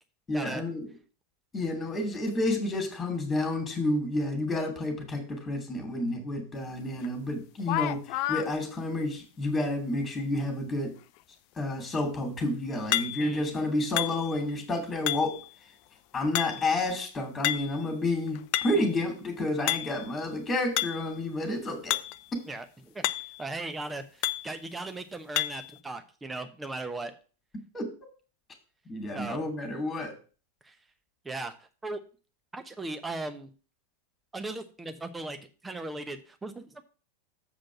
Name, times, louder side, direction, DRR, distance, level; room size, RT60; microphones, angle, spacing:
voice 1, 0.3-0.9 1.5-10.9 11.5-15.4 16.1-22.0 27.7-27.9 28.9-30.1, left 2 dB, 15° left, 3 dB, 2.7 m, -30 dB
sound 1, 7.0-7.1 7.6-8.5 12.9-13.4 14.0-14.5 15.1-15.5 16.4-16.8 17.4-17.8 18.3-18.9 19.7-20.1 20.8-21.1 21.9-22.2 22.5-22.6 23.0-23.4 24.2-24.6 25.4-25.7, left 16 dB, 45° left, 0.4 m, -30 dB
voice 2, 13.2-13.5 18.7-18.9 22.5-23.1 23.4-27.1 29.1-29.4 30.6-30.8 31.2-32.0 32.5-33.5 34.3-35.4 35.6-36.8, right 2 dB, 10° right, 8 dB, 1.0 m, -38 dB
7.6 x 5.1 x 5.9 m, 0.37 s
figure-of-eight pair, 90°, 0 cm